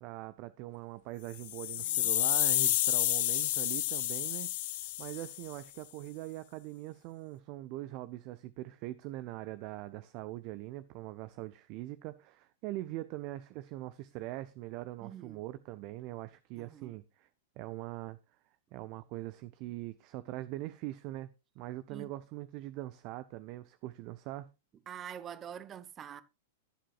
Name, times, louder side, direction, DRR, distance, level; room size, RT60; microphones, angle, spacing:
voice 1, 0.0-4.5 5.0-17.3 17.6-18.2 18.7-21.3 21.6-24.5, right 16 dB, 40° right, 0.7 m, -42 dB
sound 1, 1.3-5.5, left 16 dB, 50° left, 0.8 m, -30 dB
voice 2, 1.8-2.1 15.0-15.4 16.5-17.0 21.9-22.1 24.9-26.2, right 9 dB, 25° right, 1.0 m, -46 dB
21.5 x 7.6 x 2.4 m
figure-of-eight pair, 100°, 0 cm